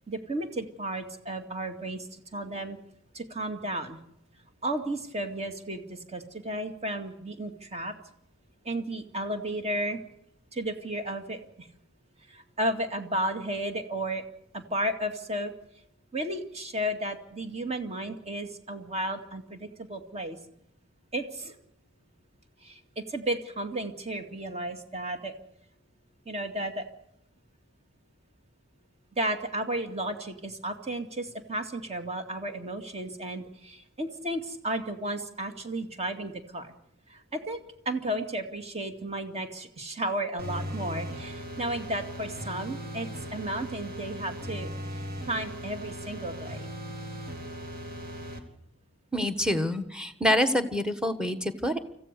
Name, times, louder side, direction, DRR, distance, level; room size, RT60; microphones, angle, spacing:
voice 1, 0.1-2.8 3.1-4.0 4.6-7.9 8.6-10.0 10.5-11.7 12.3-14.2 14.5-15.5 16.1-20.4 21.1-21.5 22.6-25.3 26.3-26.9 29.2-36.7 37.1-46.7, right 1 dB, 35° right, 7 dB, 2.2 m, -33 dB
sound 1, 40.4-48.4, equal, 50° right, 3.0 m, -38 dB
voice 2, 49.1-51.8, equal, 5° right, 10 dB, 1.4 m, -26 dB
25.5 x 15.0 x 6.8 m, 0.76 s
head